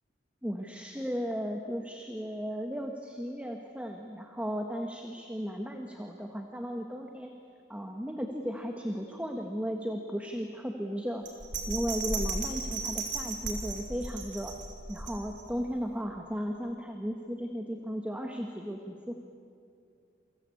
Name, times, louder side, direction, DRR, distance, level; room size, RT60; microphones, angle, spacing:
voice 1, 0.4-7.3 7.7-11.2 11.7-14.6 14.9-19.2, equal, 5° right, 3 dB, 1.4 m, -35 dB
Bell, 11.3-15.6 16.0-16.1, right 3 dB, 70° right, 4.3 m, -35 dB
28.5 x 24.0 x 8.5 m, 2.4 s
head